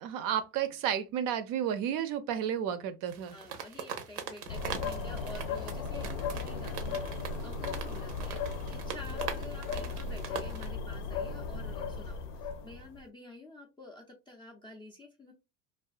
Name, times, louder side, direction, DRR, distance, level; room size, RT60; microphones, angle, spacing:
voice 1, 0.0-3.4, right 9 dB, 50° right, 0.5 m, -32 dB
sound 1, 3.1-10.7, right 7 dB, 85° right, 0.7 m, -42 dB
voice 2, 3.3-15.3, left 2 dB, 10° left, 0.3 m, -49 dB
sound 2, 4.5-13.0, left 4 dB, 75° left, 0.6 m, -36 dB
2.4 x 2.4 x 2.3 m
hypercardioid pair, 90°, 46 cm